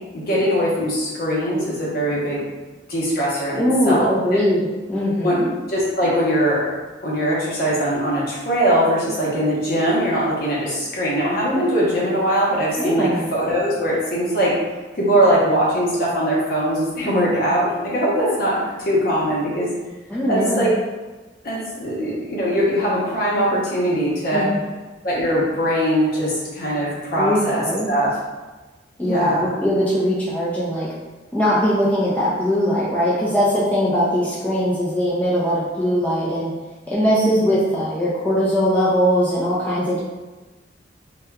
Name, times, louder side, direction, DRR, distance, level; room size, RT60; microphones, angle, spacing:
voice 1, 0.1-2.4 2.9-4.1 5.2-5.4 5.7-6.7 7.0-14.6 14.9-19.7 20.3-20.7 21.4-24.5 25.0-28.1 29.0-29.5 37.0-37.5, equal, 55° left, -5 dB, 0.8 m, -21 dB
voice 2, 3.5-5.5 12.8-13.3 20.1-20.7 24.3-24.5 27.2-27.9 29.0-30.9 31.3-36.5 36.9-40.0, equal, 10° left, -8 dB, 0.4 m, -20 dB
2.8 x 2.2 x 2.2 m, 1.2 s
head